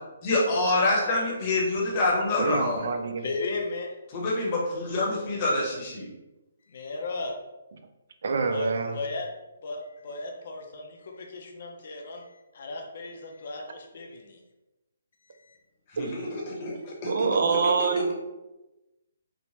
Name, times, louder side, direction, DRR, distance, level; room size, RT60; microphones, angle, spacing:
voice 1, 0.2-3.0 4.1-6.1 15.9-17.6, left 2 dB, 30° left, -3 dB, 0.8 m, -27 dB
voice 2, 2.4-3.3 8.2-8.9 16.0-16.3 17.1-18.1, right 5 dB, 65° right, 6 dB, 0.3 m, -26 dB
voice 3, 3.2-3.9 5.3-5.4 6.7-7.4 8.5-9.3 9.6-14.4 15.2-15.6, left 3 dB, 50° left, 1 dB, 0.5 m, -36 dB
3.1 x 2.1 x 2.8 m, 1.0 s
hypercardioid pair, 160°, 0 cm